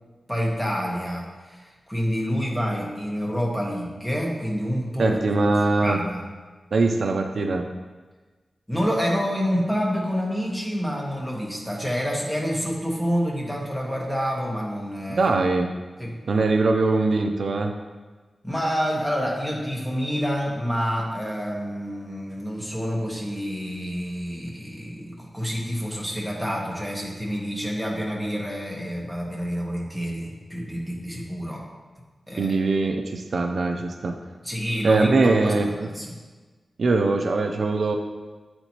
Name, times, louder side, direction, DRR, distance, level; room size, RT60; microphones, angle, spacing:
voice 1, 0.3-5.2 5.8-6.2 8.7-15.4 16.0-16.2 18.4-31.6 32.3-32.6 34.4-36.2, equal, 5° left, -3 dB, 1.1 m, -28 dB
voice 2, 5.0-6.0 6.7-7.6 15.1-15.7 16.3-17.7 32.4-34.1 34.8-35.7 36.8-37.9, right 3 dB, 60° right, 4 dB, 0.4 m, -22 dB
8.8 x 4.4 x 2.8 m, 1.3 s
wide cardioid pair, 150°, 0 cm